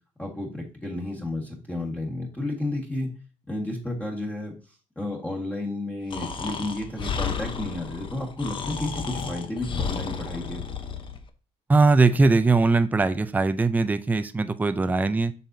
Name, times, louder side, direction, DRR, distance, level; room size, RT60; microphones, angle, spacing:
voice 1, 0.2-3.1 3.5-4.5 5.0-10.6, left 2 dB, 10° left, -2 dB, 1.7 m, -32 dB
Breathing, 6.1-11.2, left 6 dB, 35° left, 0.9 m, -32 dB
voice 2, 11.7-15.3, right 3 dB, 10° right, 11 dB, 0.5 m, -20 dB
7.3 x 5.5 x 2.7 m, 0.36 s
cardioid pair, 120°, 14 cm